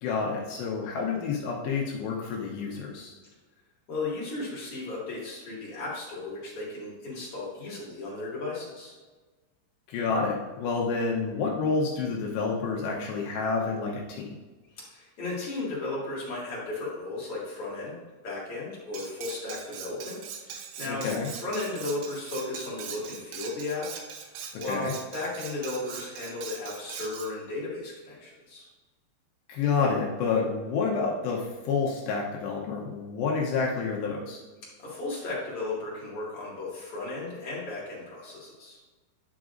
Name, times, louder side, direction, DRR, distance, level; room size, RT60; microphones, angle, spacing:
voice 1, 0.0-3.1 9.9-14.3 20.9-21.3 24.7-24.9 29.5-34.4, left 4 dB, 75° left, -2 dB, 2.8 m, -29 dB
voice 2, 3.9-9.0 14.7-18.0 18.2-23.9 24.2-28.7 34.8-38.8, left 2 dB, 45° left, -6 dB, 2.1 m, -35 dB
Cutlery silverware, 18.9-27.3, right 7 dB, 80° right, 2.2 m, -41 dB
10.0 x 6.0 x 2.5 m, 1.3 s
omnidirectional pair, 5.3 m